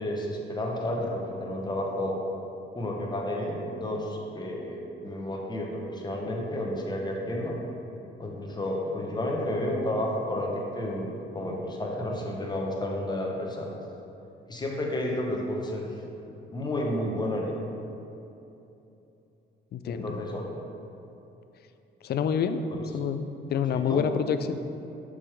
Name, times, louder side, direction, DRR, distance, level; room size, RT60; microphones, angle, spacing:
voice 1, 0.0-2.2 2.7-7.6 8.2-13.7 14.5-15.9 16.5-17.6 19.8-20.5 22.7-22.8 23.7-24.1, left 1 dB, 20° left, -1 dB, 1.0 m, -31 dB
voice 2, 19.7-20.2 22.0-22.6 22.9-24.6, left 7 dB, 55° left, 10 dB, 0.4 m, -27 dB
6.8 x 4.9 x 3.5 m, 2.9 s
cardioid pair, 90°, 20 cm